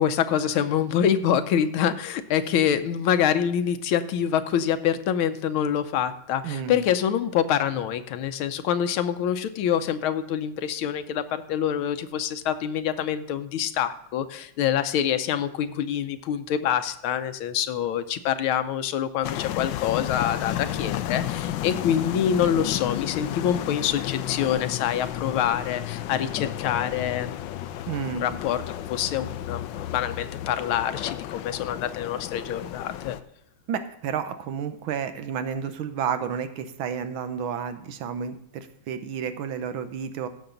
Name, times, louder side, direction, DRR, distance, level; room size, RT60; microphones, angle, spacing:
voice 1, 0.0-27.3 28.2-28.6 28.9-33.2, left 9 dB, 90° left, 10 dB, 1.6 m, -26 dB
voice 2, 6.4-6.9 27.9-28.4 33.7-40.3, right 7 dB, 80° right, 9 dB, 1.7 m, -31 dB
sound 1, 19.2-33.2, left 13 dB, 75° left, 1.2 m, -32 dB
15.5 x 6.3 x 3.9 m, 0.75 s
omnidirectional pair, 2.2 m